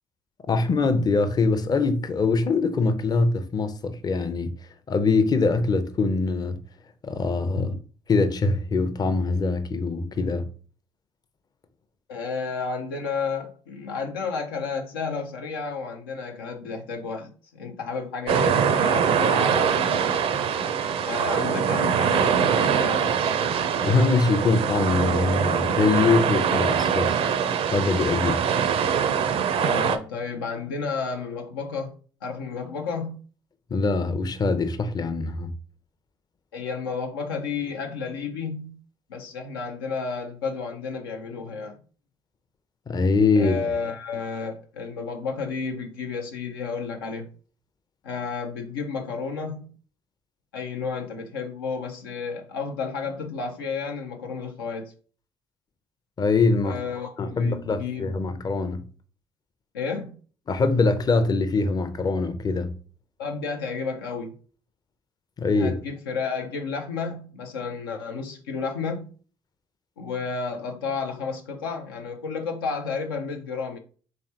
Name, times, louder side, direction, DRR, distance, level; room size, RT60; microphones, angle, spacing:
voice 1, 0.5-4.5 4.9-6.6 7.0-7.7 8.1-10.5 23.8-27.2 27.7-28.5 33.7-35.5 42.9-43.6 56.2-56.8 57.2-58.8 60.5-62.8 65.4-65.7, left 3 dB, 35° left, 0.5 m, -23 dB
voice 2, 12.1-20.2 21.0-23.5 29.6-31.9 32.2-33.2 36.5-38.8 39.1-41.7 43.4-47.3 48.0-49.8 50.5-54.9 56.6-58.2 59.7-60.2 63.2-64.3 65.6-69.1 70.0-73.8, left 5 dB, 90° left, 0.4 m, -32 dB
sound 1, 18.3-30.0, right 7 dB, 55° right, 0.4 m, -23 dB
3.4 x 3.1 x 2.8 m
hypercardioid pair, 50°, 12 cm